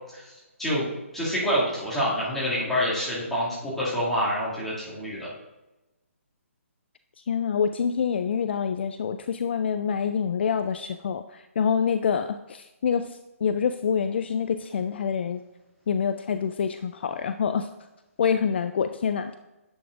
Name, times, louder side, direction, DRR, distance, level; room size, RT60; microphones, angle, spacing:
voice 1, 1.1-5.3, equal, 5° left, -9 dB, 2.3 m, -27 dB
voice 2, 7.3-15.4 15.9-17.7 18.2-19.4, left 7 dB, 50° left, 9 dB, 0.3 m, -26 dB
10.5 x 7.7 x 2.5 m, 1.0 s
hypercardioid pair, 160°, 8 cm